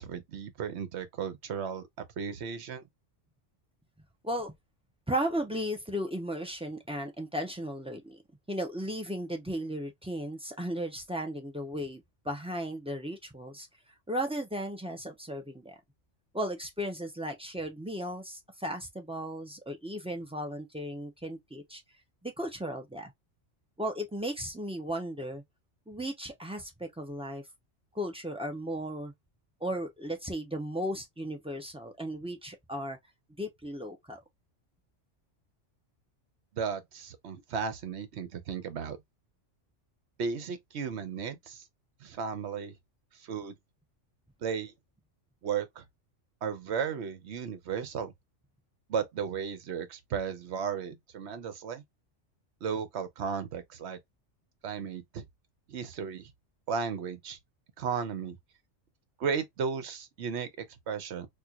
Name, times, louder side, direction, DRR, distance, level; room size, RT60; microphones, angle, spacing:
voice 1, 0.0-2.8 36.5-39.0 40.2-41.6 42.0-42.7 43.2-43.5 44.4-44.7 45.4-45.8 46.4-48.1 48.9-51.8 52.6-54.0 54.6-55.3 55.7-56.3 56.7-57.4 57.8-58.4 59.2-61.3, right 6 dB, 65° right, 1.0 m, -35 dB
voice 2, 4.2-4.6 5.1-8.2 8.5-13.7 14.1-15.7 16.3-21.8 22.2-23.1 23.8-25.4 25.9-27.4 27.9-29.1 29.6-33.0 33.4-34.2, equal, 5° right, 0.6 m, -35 dB
4.3 x 2.5 x 2.4 m
omnidirectional pair, 1.3 m